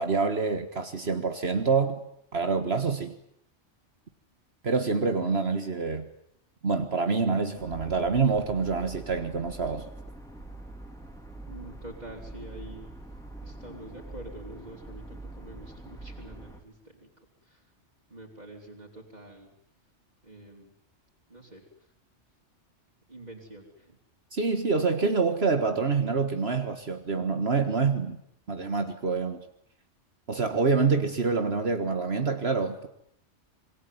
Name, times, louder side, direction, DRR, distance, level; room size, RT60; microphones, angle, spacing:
voice 1, 0.0-2.0 2.3-3.1 4.6-6.1 6.6-9.8 24.3-28.2 28.5-29.4 30.3-32.9, right 4 dB, 60° right, 1.8 m, -26 dB
sound 1, 7.5-16.6, right 2 dB, 5° left, 4.1 m, -44 dB
voice 2, 11.5-12.9 13.4-17.1 17.4-17.6 18.1-19.5 20.2-20.7 21.3-21.6 23.1-24.0, right 1 dB, 35° right, 4.5 m, -46 dB
26.5 x 24.0 x 9.5 m
omnidirectional pair, 1.2 m